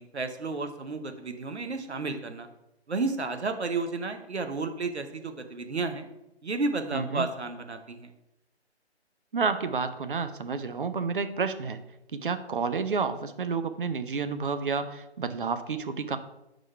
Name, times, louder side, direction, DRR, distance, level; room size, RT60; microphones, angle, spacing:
voice 1, 0.0-2.5 2.9-6.1 6.4-8.1, right 3 dB, 75° right, 7 dB, 0.9 m, -32 dB
voice 2, 6.9-7.3 9.3-11.8 12.1-16.2, right 5 dB, 50° right, 10 dB, 0.5 m, -30 dB
4.9 x 4.0 x 5.5 m, 0.92 s
figure-of-eight pair, 140°, 33 cm